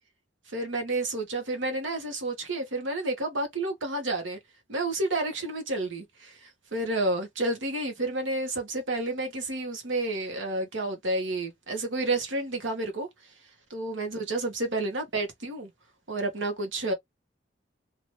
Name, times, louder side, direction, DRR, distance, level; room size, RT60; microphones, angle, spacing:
voice 1, 0.5-4.4 4.7-13.1 13.7-15.7 16.1-16.9, right 2 dB, 80° right, 1.2 m, -30 dB
2.9 x 2.6 x 3.1 m
head